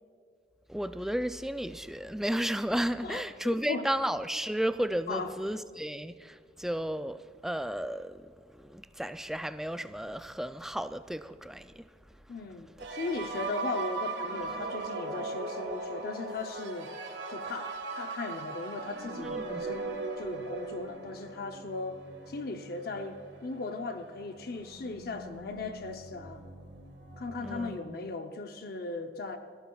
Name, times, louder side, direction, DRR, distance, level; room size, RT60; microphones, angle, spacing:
voice 1, 0.7-8.2 8.6-11.9 19.2-19.7 27.4-28.0, equal, ahead, 0.3 m, -33 dB
voice 2, 3.0-3.8 5.1-5.3 12.3-16.9 17.3-22.0 22.3-26.4 27.2-29.4, left 3 dB, 60° left, 0.7 m, -37 dB
sound 1, 12.8-27.8, right 3 dB, 85° right, 1.6 m, -40 dB
30.0 x 12.5 x 2.3 m
head